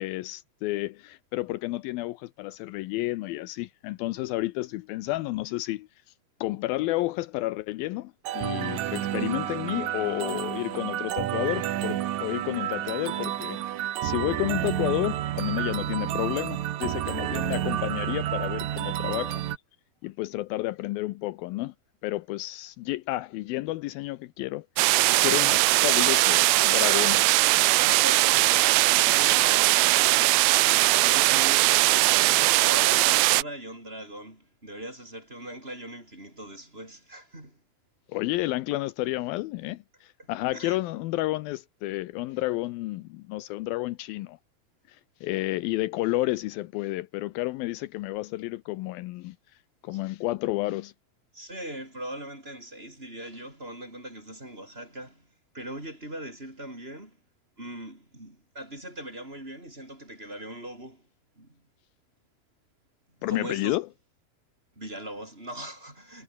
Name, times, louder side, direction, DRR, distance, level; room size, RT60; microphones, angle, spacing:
voice 1, 0.0-5.9 6.4-19.4 20.0-21.7 22.0-24.9 25.2-27.2 38.1-44.4 44.9-49.4 49.8-50.9 63.2-63.9, left 18 dB, 80° left, 2.4 m, -31 dB
sound 1, 8.3-19.6, right 12 dB, 65° right, 2.2 m, -30 dB
sound 2, 24.8-33.4, right 20 dB, 80° right, 2.5 m, -20 dB
voice 2, 27.9-30.3 30.6-37.6 40.2-40.8 49.9-50.0 51.3-55.3 55.5-57.2 57.6-61.1 61.4-61.6 63.3-63.8 64.7-66.2, right 1 dB, 15° right, 6.8 m, -40 dB
omnidirectional pair, 4.4 m